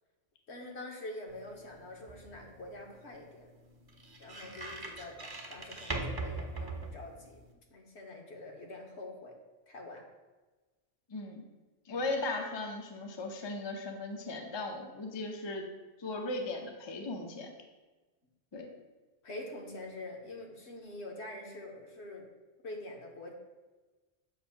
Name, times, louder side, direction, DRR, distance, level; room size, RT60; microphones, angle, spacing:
voice 1, 0.5-3.5 4.2-7.4 7.7-9.3 9.7-10.0 11.9-12.1 19.2-22.3 22.6-23.3, left 2 dB, 65° left, 1 dB, 1.2 m, -45 dB
sound 1, 1.3-7.5, right 2 dB, 25° right, 0.6 m, -42 dB
voice 2, 11.1-11.5 11.9-15.7 16.0-17.5 18.5-18.7, left 2 dB, 30° left, 2 dB, 0.5 m, -37 dB
7.4 x 2.6 x 5.7 m, 1.2 s
omnidirectional pair, 1.3 m